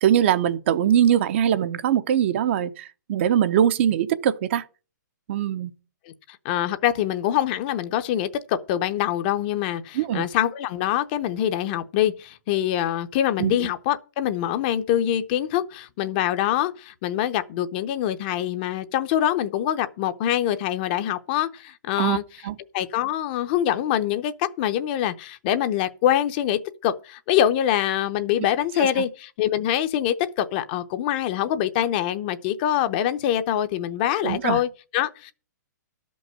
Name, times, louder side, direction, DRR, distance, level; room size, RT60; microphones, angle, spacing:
voice 1, 0.0-4.6 5.3-5.7 9.9-10.3 13.4-13.6 22.0-22.2 22.4-22.6 28.8-29.0 34.2-34.6, right 10 dB, 40° right, 0.7 m, -22 dB
voice 2, 6.4-22.2 22.7-35.3, left 11 dB, 30° left, 0.7 m, -24 dB
12.5 x 5.4 x 7.5 m
hypercardioid pair, 160°, 10 cm